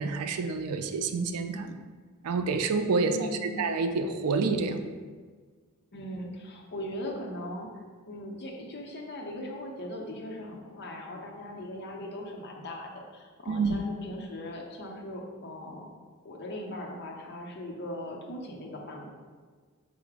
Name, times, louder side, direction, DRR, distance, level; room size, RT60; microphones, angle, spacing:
voice 1, 0.0-1.8 2.2-4.8 13.5-13.8, right 4 dB, 85° right, 7 dB, 0.4 m, -28 dB
voice 2, 3.1-3.6 5.9-15.9 16.2-19.1, left 1 dB, 50° left, 0 dB, 0.6 m, -39 dB
4.7 x 2.0 x 4.6 m, 1.5 s
head